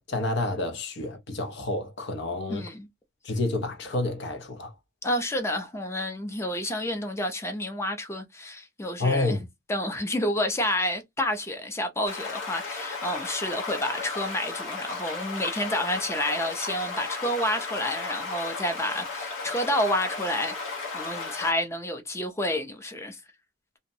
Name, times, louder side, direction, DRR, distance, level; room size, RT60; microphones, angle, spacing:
voice 1, 0.0-2.6 3.2-4.7 9.0-9.4, left 2 dB, 65° left, 0.6 m, -29 dB
voice 2, 2.5-2.9 5.0-23.2, left 1 dB, 15° left, 0.5 m, -29 dB
sound 1, 12.1-21.5, left 4 dB, 85° left, 1.1 m, -35 dB
2.7 x 2.1 x 2.6 m
head